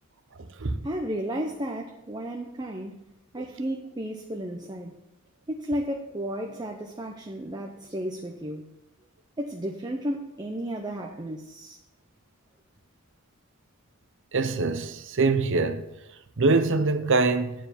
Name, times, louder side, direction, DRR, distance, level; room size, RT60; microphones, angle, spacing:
voice 1, 0.8-3.0 3.3-5.0 5.5-8.7 9.4-11.8, right 1 dB, 20° right, 0.6 m, -33 dB
voice 2, 14.3-15.8 16.4-17.5, right 3 dB, 60° right, 0.7 m, -23 dB
9.1 x 4.7 x 7.5 m
head